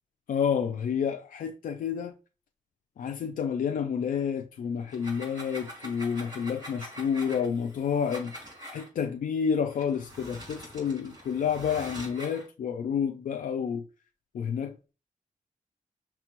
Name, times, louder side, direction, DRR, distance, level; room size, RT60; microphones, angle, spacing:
voice 1, 0.3-2.1 3.0-8.3 8.7-13.9 14.3-14.9, left 7 dB, 80° left, 0.4 m, -29 dB
sound 1, 4.8-8.9 9.7-12.5, equal, 30° right, 2.3 m, -44 dB
5.8 x 2.3 x 2.9 m
cardioid pair, 55°, 14 cm